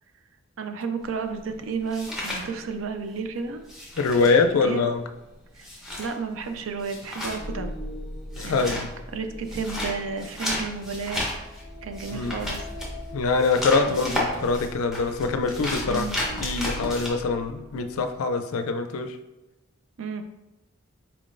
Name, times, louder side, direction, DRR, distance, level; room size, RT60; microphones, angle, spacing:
voice 1, 0.6-3.6 4.2-4.9 5.6-5.7 6.0-7.7 8.4-8.7 9.1-11.2 11.8-12.6 13.8-14.0 15.9-16.2 20.0-20.2, right 5 dB, 65° right, 7 dB, 0.4 m, -32 dB
sound 1, 1.0-3.2 3.4-17.1, left 1 dB, ahead, 0.8 m, -33 dB
voice 2, 4.0-5.0 8.4-8.9 12.1-12.4 13.1-16.1 16.4-19.2, left 4 dB, 80° left, 7 dB, 0.4 m, -24 dB
sound 2, 7.4-18.2, equal, 20° right, 1.2 m, -40 dB
4.4 x 3.8 x 2.5 m, 0.99 s
head